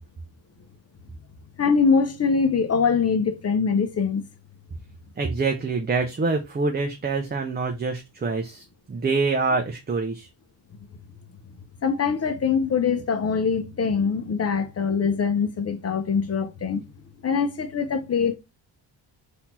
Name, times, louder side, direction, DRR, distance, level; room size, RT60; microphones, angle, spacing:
voice 1, 1.6-4.2 11.8-16.8 17.2-18.3, left 5 dB, 35° left, 0.8 m, -23 dB
voice 2, 5.2-10.3, right 4 dB, 20° right, 0.6 m, -26 dB
4.1 x 2.8 x 4.2 m
cardioid pair, 95°, 44 cm